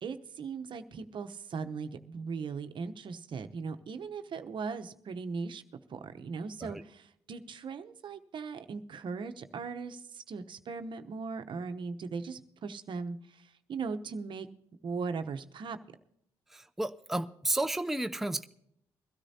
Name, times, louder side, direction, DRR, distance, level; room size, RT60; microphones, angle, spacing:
voice 1, 0.0-5.6 5.9-14.5 14.8-15.8, right 5 dB, 55° right, 9 dB, 0.9 m, -39 dB
voice 2, 16.5-18.4, right 2 dB, 5° right, 8 dB, 0.5 m, -32 dB
22.5 x 13.0 x 2.8 m, 0.74 s
supercardioid pair, 60°, 10 cm